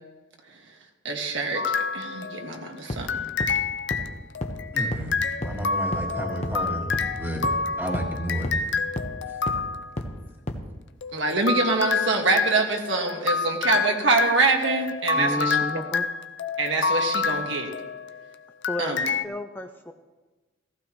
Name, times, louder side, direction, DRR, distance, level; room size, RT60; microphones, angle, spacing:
voice 1, 1.1-3.3 11.1-15.6 16.6-17.7 18.8-19.1, right 3 dB, 65° right, 2 dB, 1.8 m, -25 dB
sound 1, 1.5-2.6 3.1-10.0 11.0-18.2 18.6-19.2, left 5 dB, 65° left, 0.5 m, -28 dB
sound 2, 2.9-3.0 3.4-3.5 3.9-4.0 4.4-4.5 4.9-5.0 5.4-5.5 5.9-6.0 6.4-6.5 6.9-7.0 7.4-7.5 7.9-8.0 8.4-8.5 9.0-9.1 9.5-9.6 10.0-10.1 10.5-10.6, left 1 dB, 35° left, 1.1 m, -30 dB
voice 2, 4.7-8.5 9.3-9.4, right 1 dB, 10° right, 0 dB, 1.9 m, -32 dB
voice 3, 15.2-16.1 18.7-19.9, left 1 dB, 10° left, 6 dB, 0.4 m, -32 dB
16.5 x 15.0 x 3.1 m, 1.2 s
head